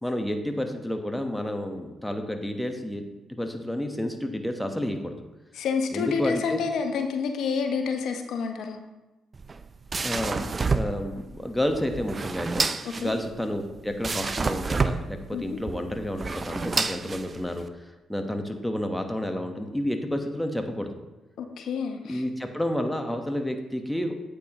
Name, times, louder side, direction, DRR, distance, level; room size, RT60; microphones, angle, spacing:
voice 1, 0.0-3.0 3.4-5.1 5.9-6.6 10.0-12.7 13.0-20.9 22.0-24.1, left 1 dB, 5° left, 5 dB, 1.2 m, -30 dB
voice 2, 5.5-8.8 12.8-13.1 15.3-15.6 21.4-22.2, left 5 dB, 70° left, 5 dB, 0.9 m, -28 dB
sound 1, 9.3-17.7, right 4 dB, 40° right, 0.5 m, -29 dB
8.5 x 8.3 x 3.0 m, 1.1 s
supercardioid pair, 55°, 0 cm